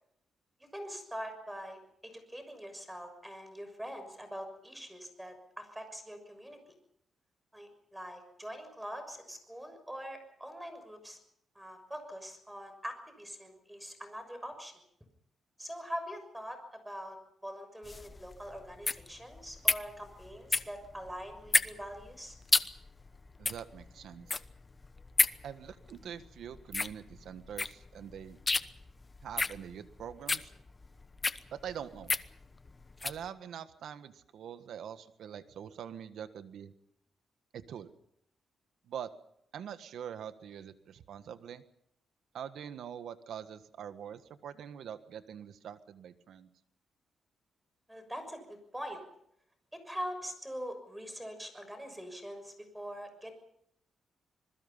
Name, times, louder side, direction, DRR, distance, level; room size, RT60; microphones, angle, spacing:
voice 1, 0.7-6.6 7.5-11.2 11.5-14.7 15.6-17.2 17.4-22.4 47.9-49.0 49.7-53.4, equal, 5° right, 8 dB, 6.4 m, -43 dB
sound 1, 17.8-33.2, left 3 dB, 25° left, 0.9 m, -33 dB
voice 2, 23.4-24.4 25.4-28.4 29.2-30.5 31.5-32.1 33.0-36.7 37.5-37.9 38.9-39.1 39.5-41.6 42.3-46.5, right 8 dB, 80° right, 11 dB, 1.5 m, -44 dB
26.5 x 21.0 x 5.7 m, 0.71 s
cardioid pair, 100°, 0 cm